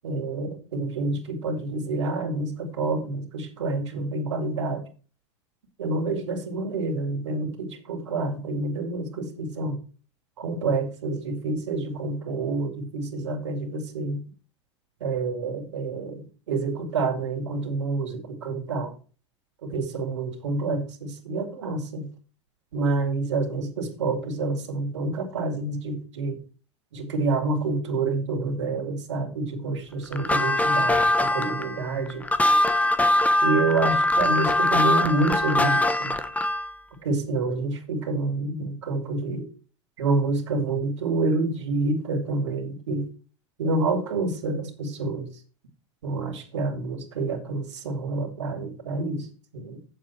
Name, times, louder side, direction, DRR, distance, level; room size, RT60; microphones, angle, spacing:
voice 1, 0.0-4.8 5.8-9.8 10.4-14.2 15.0-18.9 19.6-22.1 22.7-26.4 26.9-32.2 33.4-36.1 37.0-39.5 40.0-43.0 43.6-45.3 46.0-49.3 49.5-49.8, right 3 dB, 90° right, 3 dB, 2.5 m, -28 dB
sound 1, 30.1-36.7, left 1 dB, 10° left, 1.0 m, -22 dB
8.5 x 7.2 x 4.4 m, 0.36 s
hypercardioid pair, 105°, 15 cm